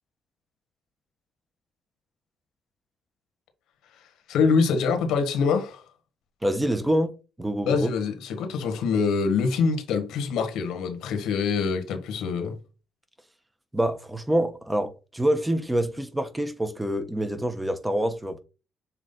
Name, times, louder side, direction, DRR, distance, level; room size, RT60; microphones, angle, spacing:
voice 1, 4.3-5.8 7.7-12.6, left 5 dB, 85° left, 1.6 m, -25 dB
voice 2, 6.4-7.9 13.7-18.4, right 1 dB, 10° right, 1.1 m, -26 dB
7.2 x 3.3 x 4.0 m
cardioid pair, 90°, 0 cm